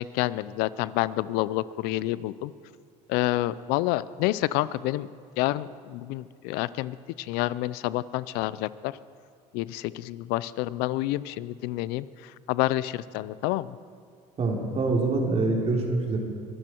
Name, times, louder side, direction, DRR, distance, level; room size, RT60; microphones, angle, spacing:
voice 1, 0.0-2.5 3.1-5.1 5.4-8.9 9.5-13.7, left 16 dB, 75° left, 18 dB, 0.5 m, -28 dB
voice 2, 14.4-16.2, right 3 dB, 40° right, 0 dB, 3.4 m, -25 dB
23.5 x 12.5 x 4.5 m, 2.5 s
supercardioid pair, 95°, 16 cm